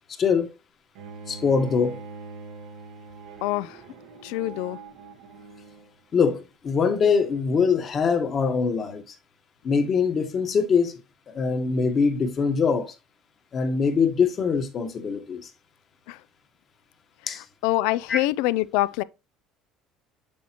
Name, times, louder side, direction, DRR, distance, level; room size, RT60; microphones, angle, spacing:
voice 1, 0.2-0.5 1.3-2.0 6.1-9.0 9.6-11.0 11.3-12.9 13.5-15.5 17.3-17.4 18.1-18.2, left 5 dB, 35° left, 1.2 m, -23 dB
Bowed string instrument, 0.9-6.0, right 4 dB, 80° right, 1.2 m, -43 dB
voice 2, 3.4-3.8 4.2-4.8 16.1-16.2 17.6-19.0, left 17 dB, 85° left, 0.3 m, -25 dB
7.0 x 6.3 x 2.9 m
cardioid pair, 125°, 0 cm